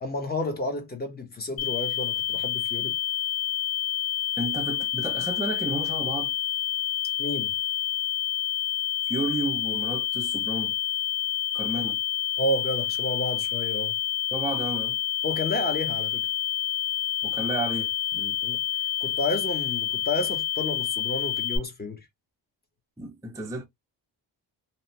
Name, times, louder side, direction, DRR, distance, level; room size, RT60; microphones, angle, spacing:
voice 1, 0.0-3.0 7.2-7.5 11.8-11.9 12.4-13.9 15.2-16.2 18.4-18.6 19.0-22.1, left 2 dB, 20° left, 0.8 m, -31 dB
sound 1, 1.6-21.6, left 12 dB, 45° left, 1.4 m, -28 dB
voice 2, 4.4-6.3 9.1-10.7 11.5-12.0 14.3-15.0 17.2-18.4 23.0-23.6, right 2 dB, 5° right, 0.5 m, -32 dB
2.8 x 2.1 x 2.7 m
wide cardioid pair, 130°, 44 cm